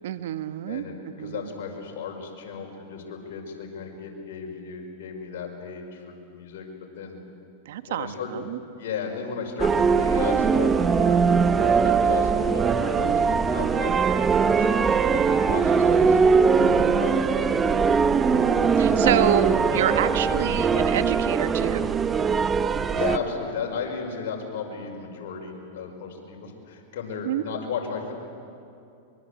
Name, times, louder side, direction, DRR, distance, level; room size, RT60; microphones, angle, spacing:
voice 1, 0.0-1.5 7.6-8.6 16.6-17.4 18.3-21.9 27.2-27.4, right 11 dB, 75° right, 12 dB, 1.2 m, -28 dB
voice 2, 0.7-6.7 7.0-7.2 7.9-8.3 8.8-13.9 14.6-17.7 18.9-19.3 19.7-20.4 20.7-20.9 22.9-28.1, left 6 dB, 70° left, 1 dB, 5.5 m, -35 dB
sound 1, 9.6-23.2, right 5 dB, 20° right, 1.0 m, -21 dB
23.5 x 23.5 x 8.3 m, 2.5 s
hypercardioid pair, 125°, 0 cm